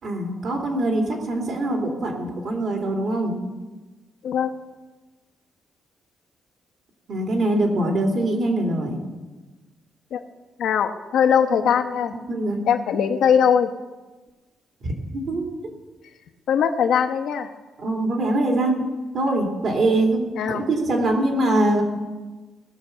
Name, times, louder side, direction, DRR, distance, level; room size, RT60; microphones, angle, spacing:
voice 1, 0.0-3.4 7.1-9.0 11.6-11.7 12.3-12.6 14.8-15.5 17.8-18.8 19.1-21.8, right 1 dB, 55° right, 1 dB, 2.7 m, -23 dB
voice 2, 10.6-12.1 12.7-13.7 16.5-17.5 20.3-20.6, left 8 dB, 75° left, 6 dB, 1.0 m, -20 dB
19.5 x 6.8 x 5.8 m, 1.2 s
cardioid pair, 135°, 0 cm